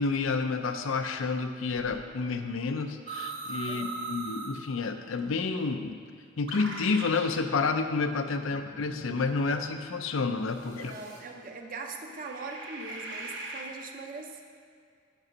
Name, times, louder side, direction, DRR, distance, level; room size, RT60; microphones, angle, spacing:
voice 1, 0.0-6.0 6.4-10.9, left 4 dB, 75° left, 7 dB, 0.5 m, -30 dB
sound 1, 1.7-1.9 3.1-4.6 5.2-5.3 6.5-7.3 8.1-9.8 10.6-11.2 12.0-13.7, right 3 dB, 60° right, 1.4 m, -40 dB
voice 2, 10.7-14.4, right 3 dB, 45° right, 3 dB, 0.7 m, -41 dB
6.1 x 5.4 x 6.1 m, 2.2 s
head